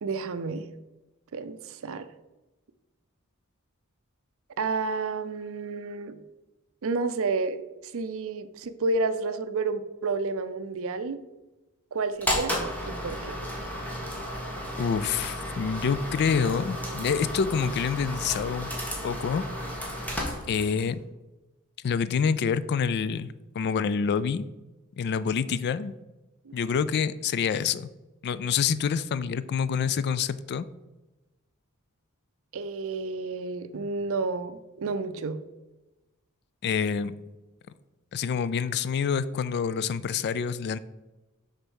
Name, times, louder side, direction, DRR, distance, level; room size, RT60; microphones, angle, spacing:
voice 1, 0.0-0.7 1.3-2.1 4.6-6.2 6.8-7.6 7.9-11.2 11.9-12.5 12.9-13.4 26.5-26.6 32.5-35.4, right 3 dB, 65° right, 12 dB, 0.5 m, -30 dB
sound 1, 12.2-20.9, equal, 5° left, 1.5 m, -33 dB
voice 2, 14.8-18.7 19.0-19.4 19.8-19.9 20.5-21.0 21.8-24.5 25.0-25.9 26.5-27.9 28.2-30.6 36.6-37.2 38.1-40.8, left 6 dB, 50° left, 16 dB, 0.3 m, -27 dB
6.6 x 4.0 x 6.3 m, 1.1 s
head